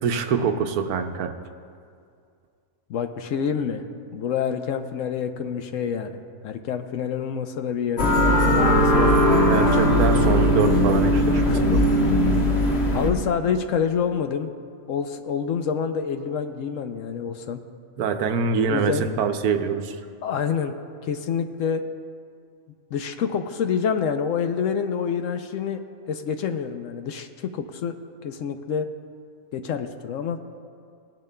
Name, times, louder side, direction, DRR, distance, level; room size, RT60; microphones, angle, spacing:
voice 1, 0.0-1.3 9.5-11.6 18.0-20.0, right 6 dB, 85° right, 7 dB, 1.2 m, -24 dB
voice 2, 2.9-3.9 4.1-9.4 11.4-11.6 12.9-14.5 14.9-17.6 18.7-19.0 20.2-20.7 21.0-21.8 22.9-25.8 26.1-28.0 28.2-28.9 29.5-30.4, left 7 dB, 70° left, 7 dB, 0.9 m, -27 dB
sound 1, 8.0-13.1, equal, 45° left, 1.4 m, -19 dB
18.0 x 10.5 x 2.2 m, 2.3 s
omnidirectional pair, 1.5 m